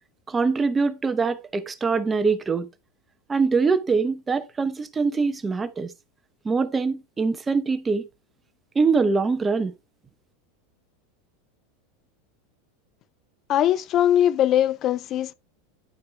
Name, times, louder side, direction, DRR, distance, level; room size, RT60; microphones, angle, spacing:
voice 1, 0.3-2.7 3.3-5.9 6.4-8.1 8.7-9.7, right 4 dB, 15° right, 0.9 m, -23 dB
voice 2, 13.5-15.3, left 11 dB, 40° left, 0.3 m, -21 dB
11.5 x 4.8 x 3.3 m
supercardioid pair, 125°, 0 cm